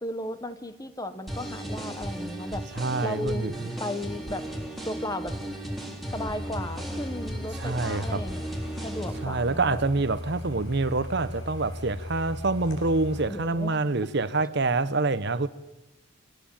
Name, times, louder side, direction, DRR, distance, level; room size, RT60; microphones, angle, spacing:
voice 1, 0.0-2.6 3.0-3.5 3.8-4.5 4.8-5.4 6.1-8.4 8.8-9.8 13.3-13.8, left 1 dB, 15° left, 1.2 m, -35 dB
sound 1, 1.3-9.2, right 1 dB, ahead, 3.4 m, -36 dB
voice 2, 2.8-3.7 7.6-8.3 9.2-15.5, right 3 dB, 50° right, 0.9 m, -26 dB
sound 2, 6.0-13.3, left 1 dB, 70° left, 6.3 m, -38 dB
25.0 x 18.5 x 8.8 m
head